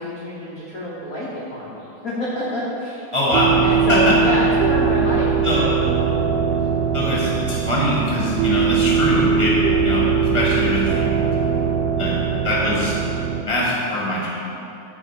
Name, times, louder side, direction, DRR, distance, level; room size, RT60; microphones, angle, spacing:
voice 1, 0.0-3.1 3.6-5.8, equal, 80° left, -7 dB, 0.8 m, -27 dB
voice 2, 3.1-3.5 3.9-4.2 5.4-5.6 6.9-9.5 9.8-11.5 12.0-12.2 12.4-13.0 13.4-14.3, left 1 dB, 20° right, -6 dB, 0.8 m, -22 dB
sound 1, 3.3-13.4, right 6 dB, 85° right, 1.4 m, -20 dB
9.4 x 4.3 x 7.2 m, 2.9 s
omnidirectional pair, 3.4 m